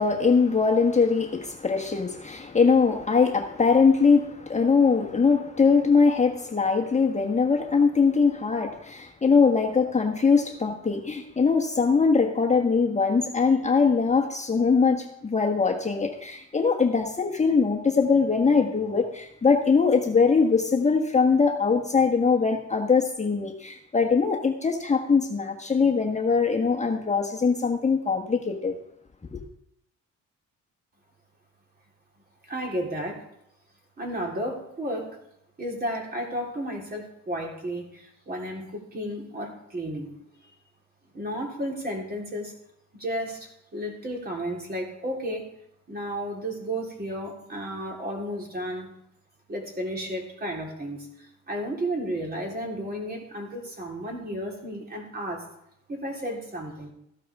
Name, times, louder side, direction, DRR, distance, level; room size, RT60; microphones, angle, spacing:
voice 1, 0.0-28.8 29.3-29.4, left 5 dB, 25° left, 1 dB, 1.3 m, -22 dB
voice 2, 32.5-33.2 34.0-35.2 35.6-40.1 40.4-40.5 41.1-42.5 42.9-45.5 45.9-48.9 49.5-51.1 51.5-55.5 55.9-56.9, equal, 30° right, -1 dB, 3.8 m, -33 dB
14.5 x 12.0 x 3.6 m, 0.77 s
cardioid pair, 90°, 30 cm